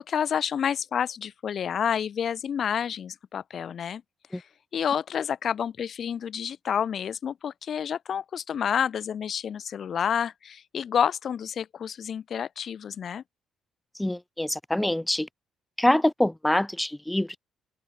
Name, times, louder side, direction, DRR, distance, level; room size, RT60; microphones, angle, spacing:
voice 1, 0.1-4.0 4.3-4.4 4.7-13.2, left 8 dB, 55° left, 2.1 m, -29 dB
voice 2, 14.0-15.3 15.8-17.4, left 1 dB, 5° left, 1.2 m, -25 dB
open air
cardioid pair, 90°, 0 cm